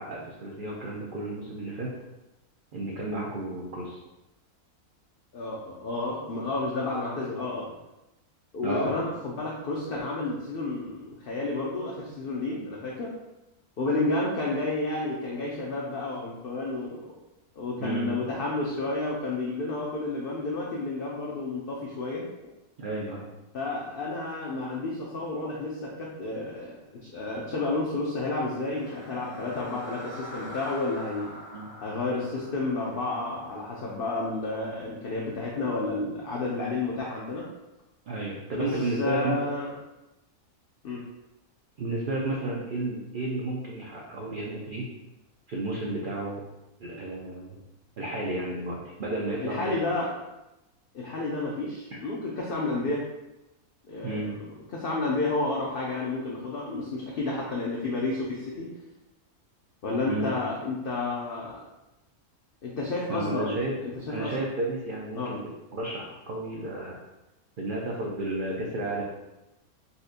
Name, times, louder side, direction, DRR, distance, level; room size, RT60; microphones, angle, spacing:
voice 1, 0.0-1.9 2.7-4.0 8.6-9.0 17.8-18.2 22.8-23.2 31.5-31.7 38.1-39.3 41.8-44.9 45.5-46.4 46.8-47.6 48.0-49.8 51.9-52.0 54.0-54.4 60.1-60.3 63.1-63.7 64.1-65.4 65.7-66.9 67.6-69.0, right 2 dB, 80° right, -3 dB, 0.4 m, -32 dB
voice 2, 5.3-7.7 8.5-13.1 13.8-17.1 17.6-22.3 23.5-31.3 31.8-37.5 38.6-39.7 40.8-41.0 49.4-50.2 50.9-53.1 53.9-54.4 54.7-58.7 59.8-61.6 62.6-64.3 65.1-65.4, left 2 dB, 65° left, -3 dB, 0.5 m, -31 dB
sound 1, 28.4-34.5, equal, 25° left, 0.8 m, -45 dB
4.1 x 2.6 x 2.4 m, 0.96 s
omnidirectional pair, 1.5 m